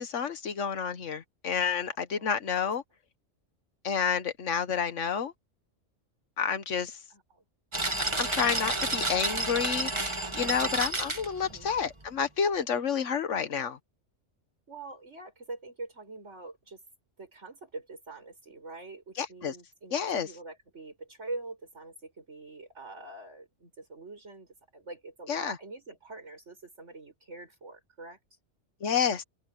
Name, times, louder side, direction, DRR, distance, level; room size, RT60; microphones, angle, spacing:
voice 1, 0.0-2.8 3.8-5.3 6.4-7.0 8.2-13.8 19.2-19.6 19.9-20.3 25.3-25.6 28.8-29.2, left 7 dB, 85° left, 1.5 m, -29 dB
voice 2, 7.1-7.4 10.3-10.8 11.4-11.7 14.7-16.8 17.2-28.2, right 3 dB, 75° right, 6.4 m, -44 dB
sound 1, 7.7-12.1, right 2 dB, 25° right, 1.7 m, -31 dB
open air
omnidirectional pair, 1.2 m